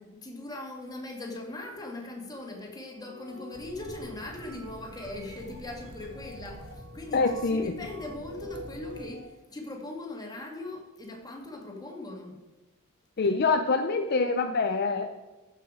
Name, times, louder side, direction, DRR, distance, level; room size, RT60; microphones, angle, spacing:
voice 1, 0.0-12.4, left 2 dB, 20° left, 1 dB, 1.9 m, -40 dB
sound 1, 2.7-9.2, right 1 dB, 60° right, 3.2 m, -48 dB
sound 2, 3.5-9.1, equal, 25° right, 1.5 m, -47 dB
voice 2, 7.1-7.7 13.2-15.1, left 4 dB, 45° left, 6 dB, 0.5 m, -25 dB
14.5 x 5.9 x 5.0 m, 1.1 s
head